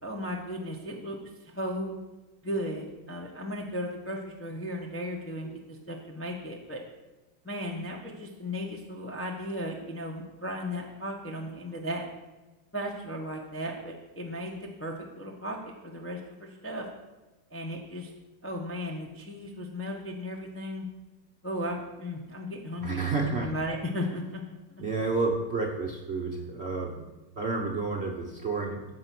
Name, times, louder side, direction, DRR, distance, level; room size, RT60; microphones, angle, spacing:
voice 1, 0.0-1.2 1.4-2.0 2.4-6.8 7.4-12.1 12.7-16.8 17.5-18.1 18.4-20.9 21.4-24.4, equal, 15° left, 0 dB, 0.5 m, -36 dB
voice 2, 22.8-23.5 24.8-27.1 27.4-28.9, right 3 dB, 45° right, 0 dB, 0.9 m, -30 dB
14.0 x 4.9 x 6.0 m, 1.1 s
omnidirectional pair, 2.4 m